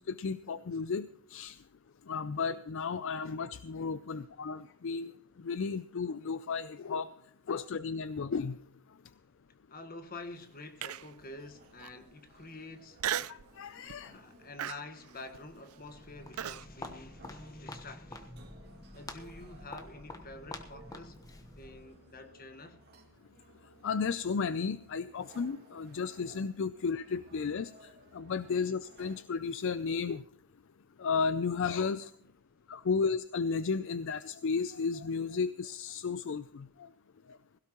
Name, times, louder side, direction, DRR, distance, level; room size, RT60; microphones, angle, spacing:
voice 1, 0.1-1.6 2.1-5.1 5.4-7.1 7.5-8.6 13.3-14.1 23.8-27.7 28.1-30.2 31.0-32.1 32.7-36.7, left 5 dB, 60° left, 0.4 m, -33 dB
voice 2, 9.7-13.0 14.0-18.3 18.9-21.2 21.6-22.8, left 2 dB, 40° left, 1.4 m, -48 dB
sound 1, 10.8-29.2, right 2 dB, 45° right, 2.2 m, -60 dB
Human voice, 10.8-11.2 11.8-11.9 13.0-13.5 13.9-14.2 14.6-16.7, right 10 dB, 75° right, 0.5 m, -36 dB
Walk footsteps, 15.9-22.0, left 2 dB, 15° left, 1.1 m, -47 dB
17.0 x 16.5 x 3.0 m
head